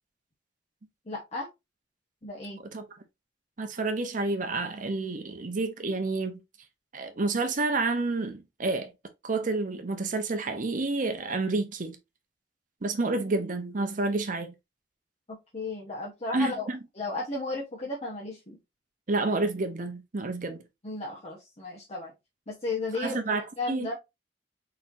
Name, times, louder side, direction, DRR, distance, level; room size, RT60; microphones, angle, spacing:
voice 1, 1.1-1.5 2.2-2.6 15.3-16.7 16.9-18.6 20.8-22.1 22.5-23.2 23.6-23.9, left 3 dB, 35° left, 1.1 m, -34 dB
voice 2, 3.6-6.4 6.9-8.9 9.2-12.0 12.8-14.5 16.3-16.8 19.1-20.6 23.0-23.9, right 3 dB, 50° right, 0.7 m, -29 dB
4.4 x 4.2 x 2.6 m
head